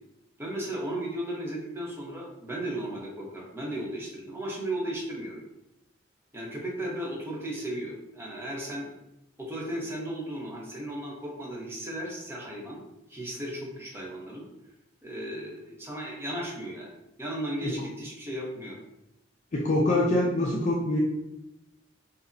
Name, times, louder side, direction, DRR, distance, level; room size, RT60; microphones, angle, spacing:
voice 1, 0.4-5.4 6.3-8.9 9.4-12.8 13.1-14.4 15.0-18.8, right 1 dB, 10° right, -4 dB, 0.7 m, -35 dB
voice 2, 19.5-21.0, left 1 dB, 40° left, -3 dB, 0.4 m, -25 dB
5.3 x 2.0 x 2.6 m, 0.88 s
head